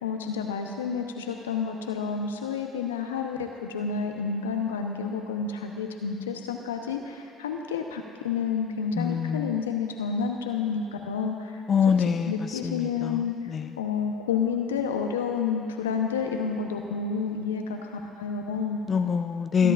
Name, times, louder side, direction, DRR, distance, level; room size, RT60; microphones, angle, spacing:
voice 1, 0.0-11.5 11.9-12.0 12.3-13.3 13.8-18.8 19.6-19.7, left 6 dB, 85° left, 3 dB, 0.8 m, -30 dB
voice 2, 9.0-9.5 11.7-13.7 18.9-19.7, left 6 dB, 45° left, 7 dB, 0.5 m, -25 dB
23.5 x 11.0 x 2.5 m, 2.7 s
hypercardioid pair, 55°, 0 cm